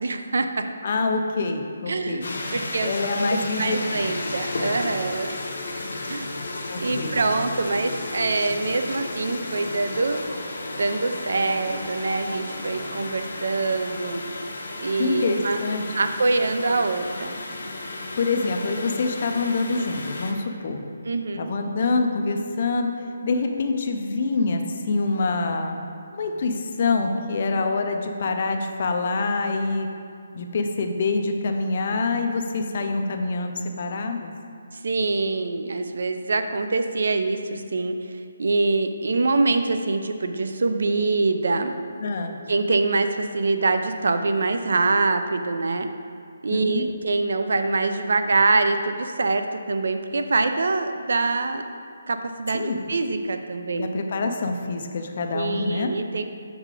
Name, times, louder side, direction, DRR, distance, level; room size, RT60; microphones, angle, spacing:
voice 1, 0.0-0.7 1.9-2.3 2.5-2.9 3.6-5.3 6.1-6.3 6.8-10.2 10.8-14.2 14.8-15.6 15.9-17.4 21.0-21.5 34.7-38.0 38.4-41.7 42.5-45.9 46.4-51.6 52.1-54.0 55.3-56.2, right 3 dB, 55° right, 7 dB, 0.4 m, -24 dB
voice 2, 0.8-2.3 2.8-4.0 6.7-7.2 15.0-15.9 18.2-20.8 21.4-25.8 26.1-29.9 30.3-34.3 42.0-42.4 46.5-46.9 52.5-52.9 53.7-55.9, left 3 dB, 30° left, 5 dB, 0.4 m, -26 dB
sound 1, 2.2-20.3, left 2 dB, 65° left, 0.8 m, -33 dB
6.5 x 4.8 x 3.7 m, 2.4 s
hypercardioid pair, 180°, 0 cm